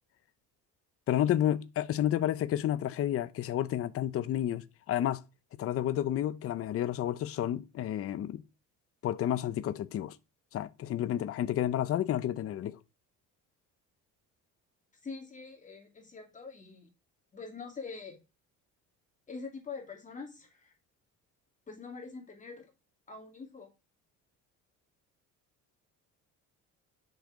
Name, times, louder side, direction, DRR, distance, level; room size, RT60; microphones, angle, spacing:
voice 1, 1.1-5.2 5.6-8.4 9.0-10.2 10.5-12.8, left 11 dB, 45° left, 0.7 m, -30 dB
voice 2, 15.0-16.9 17.3-18.2 19.3-20.7 21.7-22.7 23.1-23.7, left 4 dB, 25° left, 2.5 m, -44 dB
10.5 x 6.7 x 4.8 m
cardioid pair, 155°, 32 cm